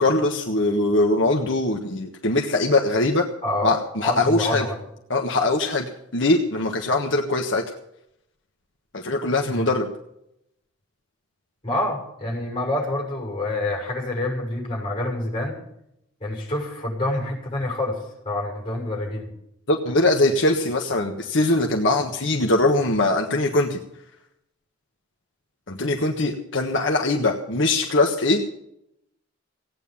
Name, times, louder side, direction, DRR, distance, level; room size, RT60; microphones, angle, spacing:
voice 1, 0.0-3.3 3.6-4.6 5.1-5.8 6.1-7.6 8.9-9.9 19.7-23.8 25.7-28.5, left 2 dB, 70° left, 2 dB, 1.5 m, -21 dB
voice 2, 3.4-4.8 9.5-9.7 11.6-15.6 16.2-18.0 18.2-19.3, left 1 dB, 25° left, 0 dB, 6.7 m, -27 dB
17.5 x 9.3 x 7.1 m, 0.78 s
head